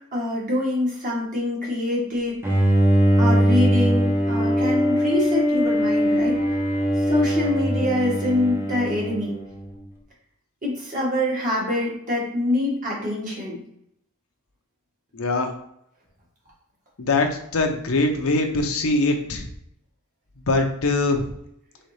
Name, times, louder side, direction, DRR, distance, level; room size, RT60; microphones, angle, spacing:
voice 1, 0.1-2.6 3.2-6.5 7.0-9.3 10.6-13.6, left 1 dB, 40° right, -5 dB, 1.8 m, -25 dB
Bowed string instrument, 2.4-9.7, equal, 10° right, 0.7 m, -21 dB
voice 2, 15.1-15.5 17.0-17.3 17.5-19.4 20.5-21.3, left 2 dB, 80° left, 3 dB, 0.8 m, -22 dB
4.0 x 4.0 x 3.3 m, 0.72 s
head